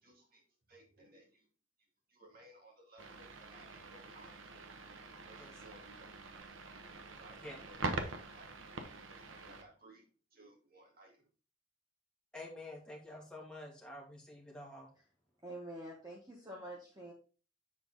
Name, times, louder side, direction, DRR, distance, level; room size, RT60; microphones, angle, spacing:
voice 1, 0.0-0.4 0.7-1.5 2.1-4.5 5.3-6.7 7.1-11.3, right 1 dB, 50° right, 0 dB, 2.4 m, -61 dB
sound 1, 3.0-9.6, right 3 dB, 85° right, 1.0 m, -44 dB
voice 2, 12.3-14.9, left 1 dB, 5° left, -2 dB, 2.0 m, -49 dB
voice 3, 15.4-17.1, right 1 dB, 20° right, -3 dB, 1.4 m, -47 dB
7.4 x 4.4 x 4.0 m, 0.37 s
head